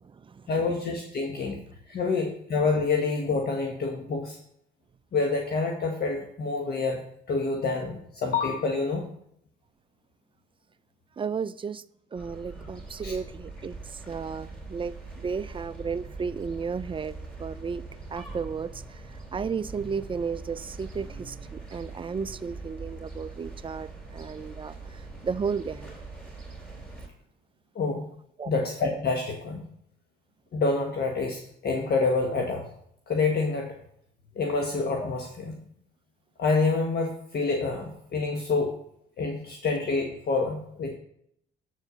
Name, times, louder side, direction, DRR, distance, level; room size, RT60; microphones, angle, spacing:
voice 1, 0.5-1.6 1.9-4.4 5.1-7.0 7.3-9.0 13.0-13.1 27.7-28.0 28.5-29.6 30.5-32.6 33.1-33.8 34.4-35.6 36.4-38.7 39.2-40.9, left 3 dB, 55° left, 1.2 m, -27 dB
voice 2, 11.2-11.8 12.1-13.8 14.1-17.8 18.1-19.0 19.3-24.7 25.2-25.9 28.4-28.5, right 5 dB, 25° right, 0.4 m, -33 dB
sound 1, 12.2-27.1, right 3 dB, 5° left, 3.2 m, -42 dB
7.8 x 4.8 x 6.7 m
cardioid pair, 90°, 20 cm